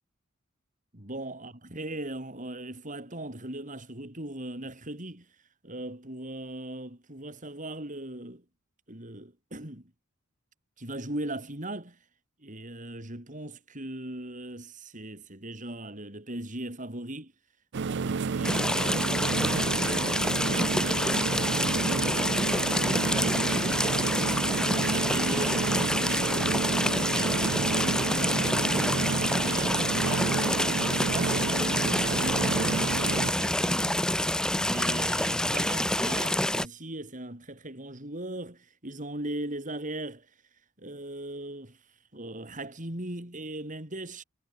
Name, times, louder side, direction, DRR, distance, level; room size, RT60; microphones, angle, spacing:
voice 1, 0.9-5.3 5.6-8.4 8.9-9.9 10.8-12.0 12.4-17.3 17.8-19.5 24.4-30.3 30.6-32.7 33.1-34.2 34.5-40.3 40.8-41.8 42.1-44.2, right 1 dB, 40° right, 6.1 m, -39 dB
sound 1, 17.7-33.3, right 5 dB, 60° right, 0.5 m, -30 dB
sound 2, 18.4-36.7, left 1 dB, 5° left, 0.7 m, -27 dB
head